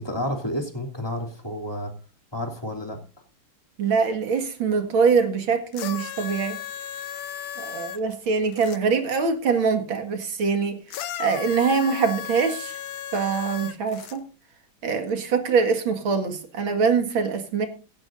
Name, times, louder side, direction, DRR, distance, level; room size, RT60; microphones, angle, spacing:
voice 1, 0.0-1.9 2.3-3.0, equal, 10° left, 2 dB, 2.8 m, -30 dB
voice 2, 3.8-6.6 7.6-12.8 13.1-14.3 14.8-17.7, right 5 dB, 85° right, 6 dB, 2.7 m, -23 dB
sound 1, 5.7-8.8 10.9-14.2 15.1-15.2, left 10 dB, 85° left, 1.7 m, -35 dB
16.5 x 15.5 x 2.6 m, 0.33 s
omnidirectional pair, 2.2 m